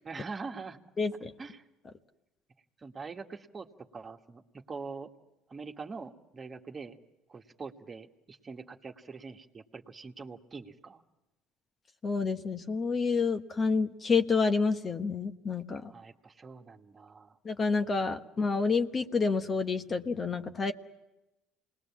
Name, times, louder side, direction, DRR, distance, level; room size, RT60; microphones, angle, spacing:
voice 1, 0.0-0.8 1.4-1.6 2.8-3.7 3.9-4.4 4.7-5.1 5.5-7.0 7.3-11.0 15.9-17.4, right 4 dB, 30° right, 4 dB, 1.6 m, -43 dB
voice 2, 1.0-1.3 12.0-15.9 17.4-20.7, left 4 dB, 35° left, 7 dB, 1.2 m, -29 dB
27.5 x 20.0 x 7.3 m, 0.98 s
supercardioid pair, 75°, 0 cm